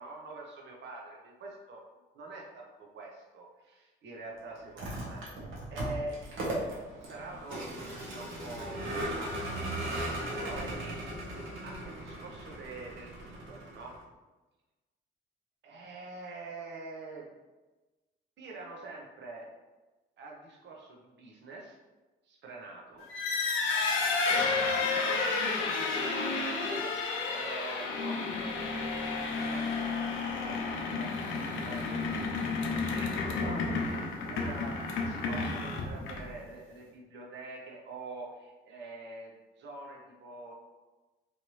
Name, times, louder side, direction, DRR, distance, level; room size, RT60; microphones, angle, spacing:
voice 1, 0.0-1.8 2.1-5.2 5.7-6.3 6.6-9.9 10.3-11.0 11.3-13.9 15.6-17.3 18.4-19.5 20.2-21.8 22.2-23.1 24.3-24.6 24.9-26.9 27.3-40.5, right 2 dB, 65° right, -1 dB, 0.8 m, -45 dB
Vehicle, 4.6-14.0, right 1 dB, 85° right, 1.0 m, -38 dB
sound 1, 23.0-36.4, left 4 dB, 85° left, 0.6 m, -31 dB
3.1 x 2.5 x 3.0 m, 1.2 s
cardioid pair, 90°, 20 cm